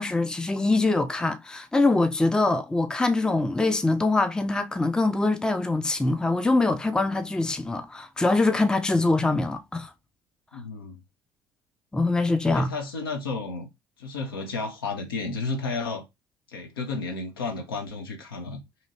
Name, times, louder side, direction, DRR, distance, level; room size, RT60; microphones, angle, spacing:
voice 1, 0.0-9.9 11.9-12.7, left 2 dB, 5° left, 0.4 m, -23 dB
voice 2, 10.5-11.0 12.4-13.7 14.0-16.0 16.5-18.6, left 3 dB, 80° left, 0.6 m, -32 dB
2.7 x 2.7 x 2.7 m
figure-of-eight pair, 55°, 12 cm